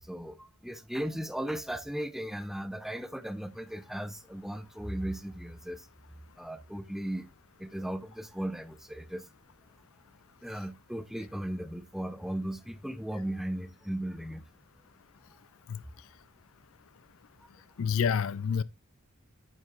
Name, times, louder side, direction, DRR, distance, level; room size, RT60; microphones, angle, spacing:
voice 1, 0.0-5.9 6.4-7.3 7.6-9.3 10.4-14.4 17.4-17.5, right 1 dB, ahead, 0.6 m, -36 dB
voice 2, 17.8-18.6, left 7 dB, 65° left, 0.4 m, -28 dB
9.5 x 9.0 x 2.5 m
head